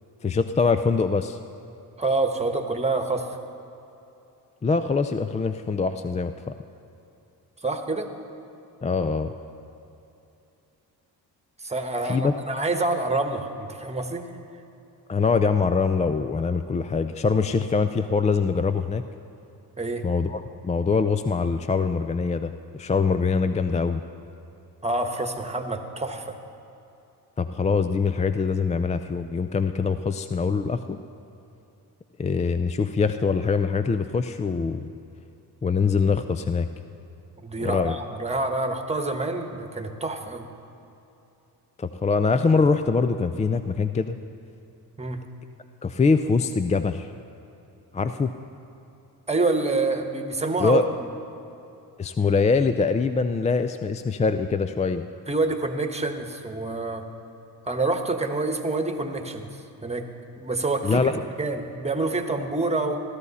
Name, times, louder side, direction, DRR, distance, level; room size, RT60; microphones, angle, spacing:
voice 1, 0.2-1.4 4.6-6.5 8.8-9.3 12.0-12.3 15.1-19.0 20.0-24.0 27.4-31.0 32.2-34.9 35.6-36.7 37.6-38.0 41.8-44.2 45.8-47.1 47.9-48.3 50.6-50.8 52.0-55.0 60.8-61.1, left 4 dB, 20° left, 10 dB, 0.3 m, -23 dB
voice 2, 2.0-3.3 7.6-8.1 11.6-14.3 19.8-20.0 24.8-26.4 37.4-40.5 45.0-45.2 49.3-50.8 55.3-57.1 57.6-60.1 60.4-63.0, right 2 dB, 15° right, 6 dB, 1.2 m, -27 dB
16.0 x 12.5 x 4.1 m, 2.8 s
cardioid pair, 70°, 41 cm